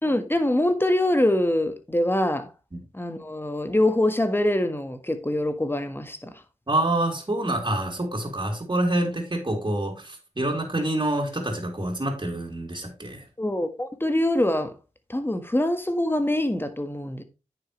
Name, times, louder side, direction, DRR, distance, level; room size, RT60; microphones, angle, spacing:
voice 1, 0.0-2.5 2.9-6.3 13.4-14.7 15.1-17.2, left 1 dB, 15° left, 1.6 m, -24 dB
voice 2, 6.7-13.2, right 1 dB, 35° right, 3.3 m, -27 dB
9.5 x 6.9 x 3.3 m
wide cardioid pair, 60°, 14 cm